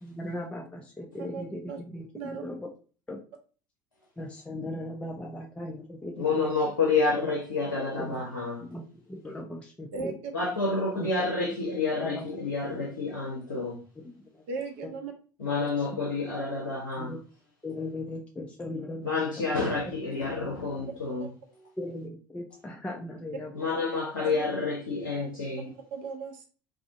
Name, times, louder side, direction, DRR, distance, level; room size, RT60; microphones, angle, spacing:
voice 1, 0.0-2.7 3.1-3.2 4.2-6.5 8.0-8.2 8.6-10.2 11.0-11.1 11.5-11.6 12.0-12.3 12.9-13.0 14.0-14.4 14.8-15.0 15.7-16.0 17.0-17.2 17.6-19.4 19.9-20.0 21.8-23.5, left 1 dB, 10° left, 0.4 m, -38 dB
voice 2, 1.3-1.8 2.1-2.4 9.9-10.1 14.5-15.1 15.6-15.7 21.2-21.3 24.2-24.4 25.1-25.3 25.9-26.4, right 5 dB, 60° right, 0.5 m, -37 dB
voice 3, 6.2-8.6 10.3-13.8 15.4-17.1 19.0-21.3 23.6-25.7, left 3 dB, 80° left, 0.5 m, -29 dB
2.4 x 2.4 x 2.4 m
figure-of-eight pair, 60°, 10 cm